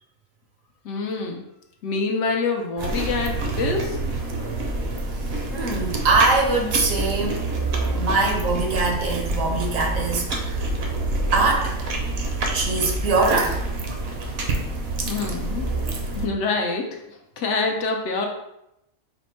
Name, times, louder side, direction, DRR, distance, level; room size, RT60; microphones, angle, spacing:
voice 1, 0.8-1.4 1.8-4.0 15.0-15.7 16.1-18.3, left 3 dB, 70° left, 2 dB, 0.8 m, -26 dB
sound 1, 2.8-16.3, right 2 dB, 55° right, 0.8 m, -27 dB
voice 2, 5.5-7.4 7.9-10.7 11.3-11.8 12.5-13.6, right 3 dB, 75° right, 1 dB, 1.1 m, -22 dB
4.2 x 2.0 x 4.3 m, 0.84 s
omnidirectional pair, 1.4 m